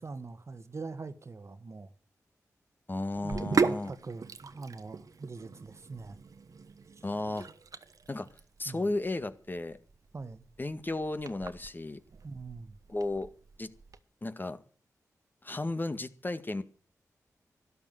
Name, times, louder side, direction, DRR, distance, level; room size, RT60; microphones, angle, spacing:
voice 1, 0.0-1.9 3.2-6.2 6.9-7.0 8.6-8.9 10.1-10.5 12.2-12.8, right 4 dB, 50° right, 1.5 m, -43 dB
voice 2, 2.9-3.9 7.0-7.5 8.1-8.3 8.6-9.8 10.6-12.0 12.9-13.3 13.6-13.7 14.2-14.6 15.4-16.6, left 2 dB, 30° left, 1.8 m, -34 dB
Sink (filling or washing), 3.1-14.0, right 5 dB, 65° right, 1.2 m, -37 dB
12.5 x 11.5 x 9.1 m
cardioid pair, 50°, 6 cm